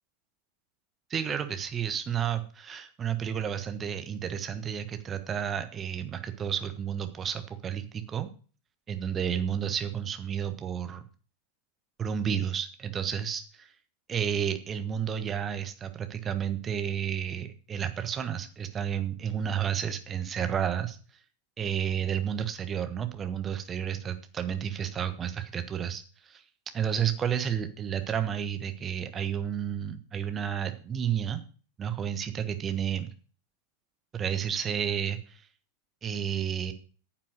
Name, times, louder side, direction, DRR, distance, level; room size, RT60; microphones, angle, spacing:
voice 1, 1.1-8.3 8.9-11.0 12.0-13.7 14.1-21.0 21.6-26.0 26.3-26.4 26.7-31.4 31.8-33.1 34.1-35.4 36.0-36.7, right 8 dB, 25° right, 9 dB, 1.3 m, -31 dB
9.6 x 7.6 x 6.4 m, 0.40 s
figure-of-eight pair, 90°, 0 cm